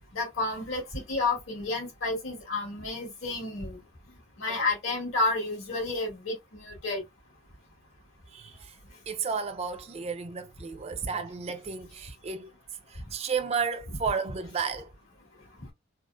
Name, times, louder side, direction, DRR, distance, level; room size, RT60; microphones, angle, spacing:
voice 1, 0.1-3.8 4.4-7.0, left 2 dB, 65° left, 2.0 m, -30 dB
voice 2, 8.3-8.8 9.1-12.5 12.9-14.9, right 5 dB, 30° right, 0.4 m, -33 dB
3.9 x 2.4 x 2.3 m
head